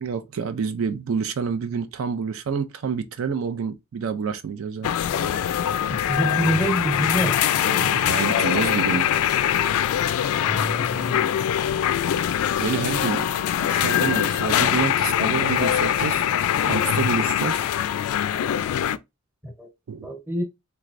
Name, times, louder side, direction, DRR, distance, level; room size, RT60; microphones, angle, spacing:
voice 1, 0.0-5.0 7.6-9.1 12.6-13.3 13.7-16.2 16.6-17.7 19.9-20.1, right 6 dB, 70° right, 0.4 m, -28 dB
sound 1, 4.8-19.0, left 10 dB, 85° left, 0.3 m, -23 dB
voice 2, 5.9-7.4 10.5-11.4 19.4-19.7 20.0-20.4, right 1 dB, 10° right, 0.9 m, -26 dB
3.3 x 3.1 x 2.5 m
head